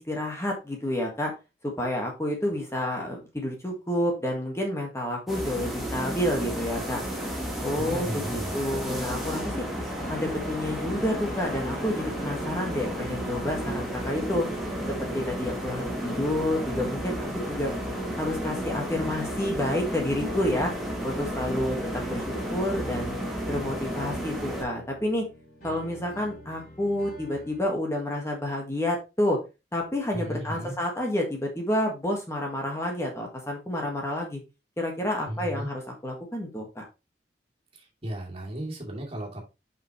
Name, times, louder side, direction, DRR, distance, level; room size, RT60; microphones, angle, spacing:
voice 1, 0.0-1.3 1.6-7.0 7.6-9.7 10.1-14.5 15.0-17.8 18.2-20.7 21.0-23.2 23.5-25.2 25.6-29.4 29.7-34.4 34.8-36.8, left 1 dB, 15° left, 1 dB, 1.6 m, -29 dB
sound 1, 5.3-24.6, equal, ahead, 2.4 m, -32 dB
voice 2, 7.7-8.5 30.1-30.7 35.3-35.7 37.7-39.4, right 1 dB, 35° right, -1 dB, 2.5 m, -35 dB
sound 2, 8.7-27.7, equal, 50° left, 3.5 m, -46 dB
7.5 x 5.6 x 3.1 m, 0.27 s
head